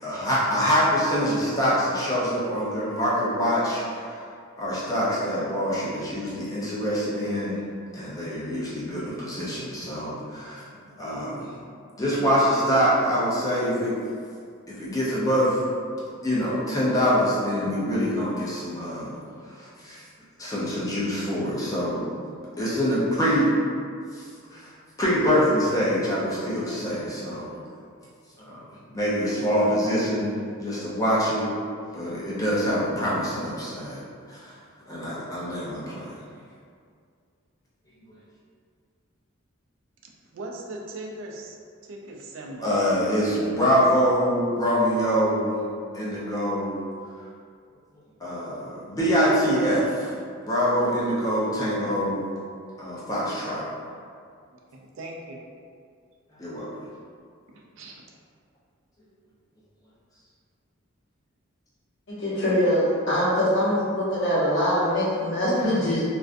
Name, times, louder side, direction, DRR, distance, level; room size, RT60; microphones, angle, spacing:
voice 1, 0.0-4.2 4.6-7.6 7.9-11.5 12.0-14.0 14.7-15.6 16.2-19.2 19.4-20.0 20.4-22.1 22.6-23.6 24.1-27.6 28.4-28.6 28.9-31.5 31.9-34.6 34.9-36.2 42.6-45.6 45.9-46.8 48.2-50.2 50.4-52.2 52.8-53.7 56.4-56.9, equal, 15° left, -8 dB, 0.5 m, -25 dB
voice 2, 40.0-41.6 41.8-42.7 54.5-55.4 57.5-58.0, right 2 dB, 65° right, -1 dB, 0.4 m, -39 dB
voice 3, 62.2-66.0, equal, 60° left, -10 dB, 0.9 m, -23 dB
2.4 x 2.1 x 2.5 m, 2.2 s
head